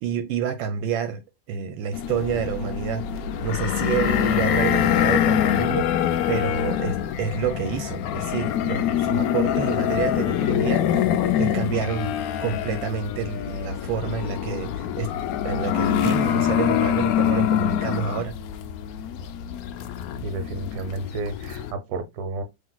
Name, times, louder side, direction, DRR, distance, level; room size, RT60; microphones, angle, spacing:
voice 1, 0.0-1.2 1.5-5.9 6.3-11.1 11.4-15.1 15.4-18.4, right 7 dB, 80° right, 1.3 m, -28 dB
sound 1, 1.9-21.7, left 10 dB, 80° left, 0.8 m, -25 dB
voice 2, 20.2-22.4, right 2 dB, 60° right, 1.2 m, -31 dB
5.8 x 3.1 x 2.2 m
omnidirectional pair, 2.1 m